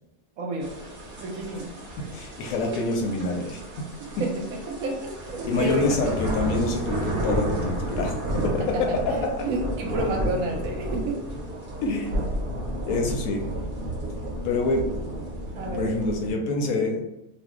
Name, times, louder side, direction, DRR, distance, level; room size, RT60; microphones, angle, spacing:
voice 1, 0.4-0.7 1.2-1.7 4.2-4.3 4.7-6.2 8.7-9.0 9.4-11.2 15.6-15.9, right 2 dB, 70° right, 1 dB, 0.9 m, -29 dB
sound 1, 0.6-16.3, equal, 45° right, 0.7 m, -32 dB
voice 2, 2.1-3.6 5.5-8.1 8.4-9.4 11.8-12.1 12.9-13.4 14.4-14.8 15.7-17.0, left 3 dB, 70° left, 2 dB, 0.9 m, -26 dB
2.6 x 2.1 x 3.6 m, 0.92 s
omnidirectional pair, 1.7 m